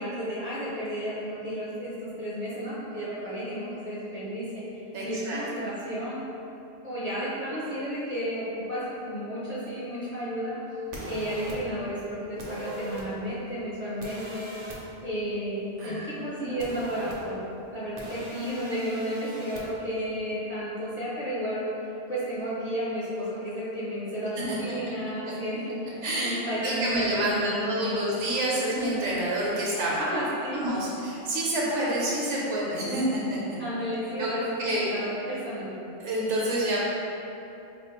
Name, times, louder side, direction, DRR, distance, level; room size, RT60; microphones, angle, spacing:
voice 1, 0.0-4.6 5.0-6.2 6.8-8.8 9.1-10.6 11.1-14.5 15.0-17.4 17.7-21.7 22.1-28.0 30.1-30.6 33.6-35.8, equal, 40° left, -10 dB, 0.5 m, -32 dB
voice 2, 4.9-5.4 15.8-16.6 24.5-24.6 26.0-26.4 26.6-30.1 30.5-33.4 34.2-34.3 34.6-34.8 36.0-36.8, right 1 dB, 70° right, -5 dB, 1.1 m, -28 dB
sound 1, 10.9-11.6 12.4-13.0 14.0-14.8 16.6-17.2 18.0-19.6, right 1 dB, 55° right, 0.7 m, -39 dB
4.3 x 2.4 x 2.9 m, 2.9 s
omnidirectional pair, 1.3 m